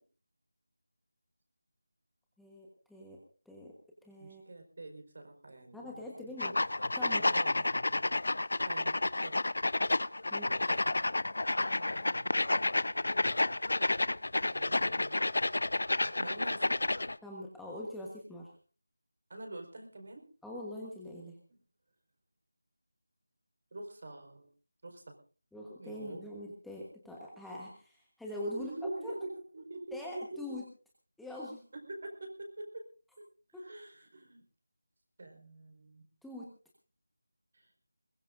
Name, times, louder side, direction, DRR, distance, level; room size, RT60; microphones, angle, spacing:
voice 1, 2.4-3.2 3.4-3.7 4.0-4.5 5.7-6.6 6.9-7.3 10.3-10.5 17.2-18.5 20.4-21.4 25.5-28.7 29.0-29.1 29.9-30.6 31.2-31.6 33.5-33.6 36.2-36.5, left 1 dB, ahead, -4 dB, 1.3 m, -43 dB
voice 2, 4.2-6.3 7.3-8.1 8.6-9.3 11.8-12.3 14.5-15.2 16.0-16.8 19.3-20.2 21.5-21.6 23.7-24.5 24.8-25.1 25.8-26.3 28.5-30.4 31.7-32.8 33.2-33.3 33.6-34.4 35.2-36.0 37.5-37.7, right 2 dB, 45° right, 4 dB, 4.5 m, -45 dB
sound 1, 6.4-17.2, left 2 dB, 70° left, 0.8 m, -30 dB
22.0 x 20.5 x 2.6 m, 0.37 s
figure-of-eight pair, 175°, 0 cm